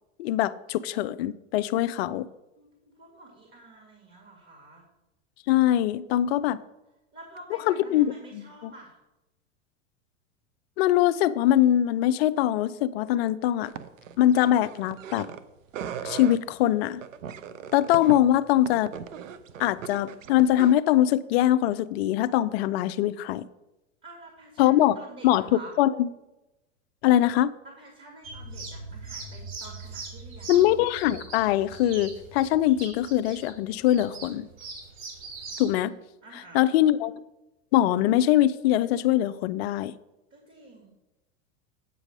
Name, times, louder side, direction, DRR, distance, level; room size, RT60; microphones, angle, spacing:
voice 1, 0.2-2.3 5.5-6.6 7.7-8.7 10.8-13.7 14.2-15.3 16.0-17.0 17.7-18.9 19.6-23.5 24.6-25.0 25.2-26.1 27.0-27.5 30.5-34.5 35.6-35.9 36.3-37.1 37.7-39.9, left 13 dB, 55° left, 16 dB, 0.5 m, -23 dB
voice 2, 2.6-4.8 7.1-8.9 24.0-25.7 27.8-30.7 36.2-36.7 40.3-40.9, right 2 dB, 30° right, 1 dB, 2.2 m, -48 dB
sound 1, 13.7-15.4 15.7-16.4 17.0-20.8, right 8 dB, 80° right, 0.7 m, -39 dB
sound 2, 28.2-35.7, right 3 dB, 50° right, 3.0 m, -41 dB
8.3 x 5.1 x 6.0 m, 0.97 s
hypercardioid pair, 95°, 38 cm